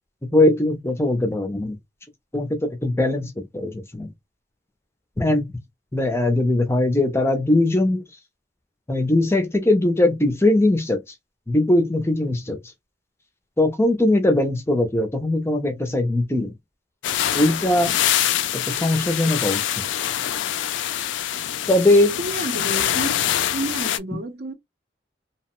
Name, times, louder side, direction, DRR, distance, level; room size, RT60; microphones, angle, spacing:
voice 1, 0.3-1.8 2.3-4.1 5.2-5.5 5.9-8.0 8.9-11.1 11.5-12.6 13.6-16.5 17.3-17.9 18.5-19.6 21.7-22.1, left 1 dB, 15° left, 0.4 m, -20 dB
sound 1, 17.0-24.0, left 11 dB, 80° left, 0.3 m, -24 dB
voice 2, 22.2-23.2 23.5-24.5, right 2 dB, 60° right, 0.6 m, -30 dB
2.8 x 2.1 x 2.9 m
head